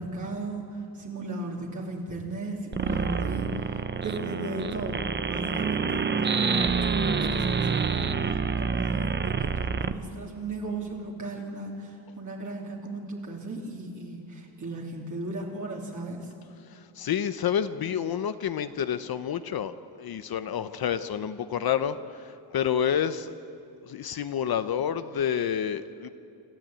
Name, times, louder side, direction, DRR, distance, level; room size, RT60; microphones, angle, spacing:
voice 1, 0.0-16.3, right 2 dB, 45° right, -2 dB, 3.0 m, -36 dB
sound 1, 2.7-9.9, right 5 dB, 25° right, 0.7 m, -27 dB
voice 2, 16.7-23.3 23.8-26.1, left 9 dB, 60° left, 11 dB, 0.8 m, -29 dB
27.0 x 14.0 x 9.0 m, 2.7 s
wide cardioid pair, 145°, 41 cm